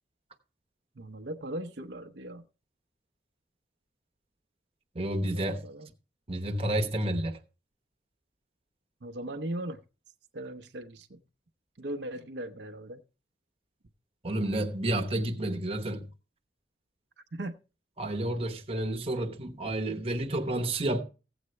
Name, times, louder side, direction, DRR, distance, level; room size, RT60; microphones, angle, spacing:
voice 1, 1.0-2.4 5.3-5.9 9.0-9.8 10.3-11.2 11.8-13.0 17.3-17.6, right 1 dB, 65° right, 0.8 m, -38 dB
voice 2, 4.9-5.6 6.3-7.4 14.2-16.1 18.0-21.0, right 1 dB, 35° right, 1.0 m, -30 dB
15.5 x 7.9 x 3.2 m
head